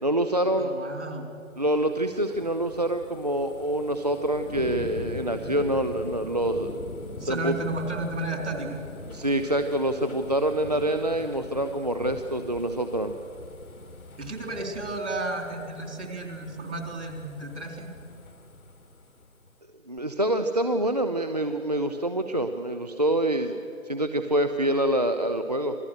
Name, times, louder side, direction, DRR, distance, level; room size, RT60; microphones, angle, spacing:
voice 1, 0.0-0.7 1.6-6.7 7.2-7.6 9.1-13.2 19.9-23.6 23.8-25.8, right 1 dB, 30° right, 7 dB, 0.6 m, -26 dB
voice 2, 0.6-1.3 7.2-8.8 14.2-17.9, right 2 dB, 55° right, 3 dB, 4.0 m, -33 dB
sound 1, 1.4-19.5 20.0-20.1, left 2 dB, 80° left, 2.2 m, -42 dB
26.5 x 19.5 x 6.3 m, 2.6 s
figure-of-eight pair, 160°, 42 cm